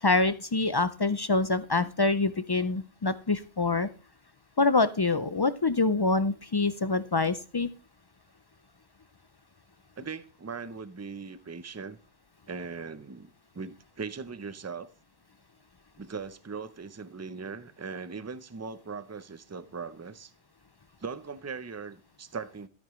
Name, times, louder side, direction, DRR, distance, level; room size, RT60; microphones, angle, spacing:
voice 1, 0.0-3.9 4.6-7.7, left 3 dB, 45° left, 0.3 m, -25 dB
voice 2, 10.0-12.0 12.5-14.9 16.0-20.3 21.0-22.7, right 5 dB, 20° right, 0.5 m, -39 dB
13.0 x 8.5 x 3.1 m
omnidirectional pair, 1.1 m